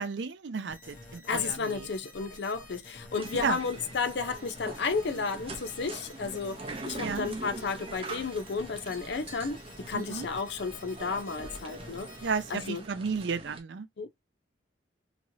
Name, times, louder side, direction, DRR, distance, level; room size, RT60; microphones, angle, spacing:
voice 1, 0.0-1.9 3.4-3.6 7.0-7.3 9.9-10.3 12.2-13.9, right 5 dB, 65° right, 0.5 m, -33 dB
sound 1, 0.7-12.6, left 1 dB, 40° left, 0.9 m, -49 dB
voice 2, 1.3-12.1 12.5-12.8 14.0-14.2, left 4 dB, 60° left, 0.5 m, -33 dB
sound 2, 3.1-13.6, right 2 dB, 30° right, 0.7 m, -43 dB
3.0 x 2.8 x 2.7 m
head